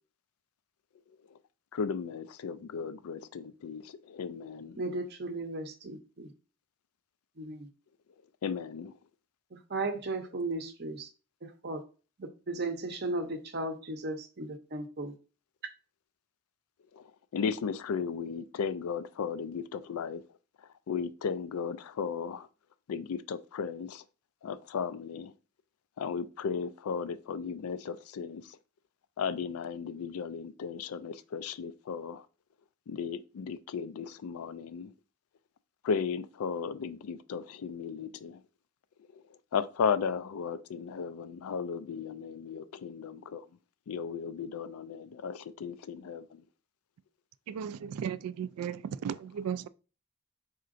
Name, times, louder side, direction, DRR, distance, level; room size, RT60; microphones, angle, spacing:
voice 1, 1.7-4.8 8.4-9.0 16.9-22.5 22.9-24.0 24.4-25.3 26.0-28.6 29.2-32.3 32.9-34.9 35.8-38.4 39.1-43.5 43.9-46.4, left 6 dB, 80° left, 0.4 m, -35 dB
voice 2, 4.8-6.3 7.4-7.7 9.7-11.1 11.4-11.8 12.2-15.1, right 2 dB, 45° right, 0.6 m, -36 dB
voice 3, 47.5-49.7, right 8 dB, 90° right, 0.3 m, -35 dB
4.3 x 3.8 x 2.5 m
head